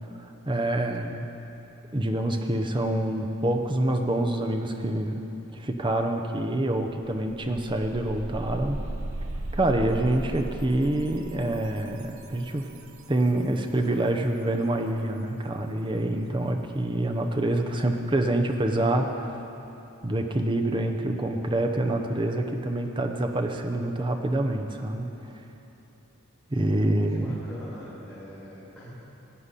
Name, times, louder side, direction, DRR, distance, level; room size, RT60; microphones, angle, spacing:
voice 1, 0.5-1.3 1.9-5.2 5.5-8.8 9.5-12.7 13.1-19.4 20.0-25.3 26.5-27.4, right 1 dB, 20° right, 4 dB, 0.8 m, -26 dB
sound 1, 6.4-6.5 6.8-13.6, right 1 dB, 75° right, 1.0 m, -37 dB
voice 2, 27.0-28.9, equal, 5° left, -14 dB, 2.8 m, -43 dB
16.5 x 5.7 x 9.9 m, 3.0 s
head